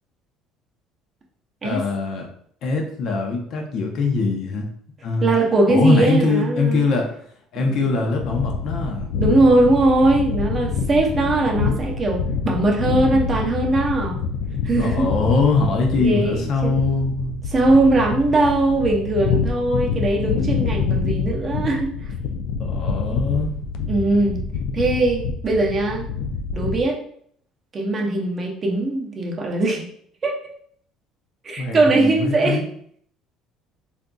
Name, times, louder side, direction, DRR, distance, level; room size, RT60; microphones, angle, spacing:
voice 1, 1.6-2.3 2.6-4.7 5.0-5.3 5.7-7.1 7.5-9.1 14.8-17.4 22.6-23.5 31.6-32.7, left 3 dB, 50° left, 2 dB, 0.7 m, -22 dB
voice 2, 5.2-6.8 7.6-7.8 9.1-14.2 14.6-15.1 16.0-16.8 17.5-21.9 23.9-24.4 24.7-26.1 26.5-27.0 27.7-29.9 30.2-30.4 31.4-32.6, right 2 dB, 25° right, 0 dB, 0.6 m, -20 dB
sound 1, 8.2-26.8, left 5 dB, 85° left, 0.3 m, -26 dB
3.8 x 2.5 x 2.3 m, 0.63 s
cardioid pair, 145°, 0 cm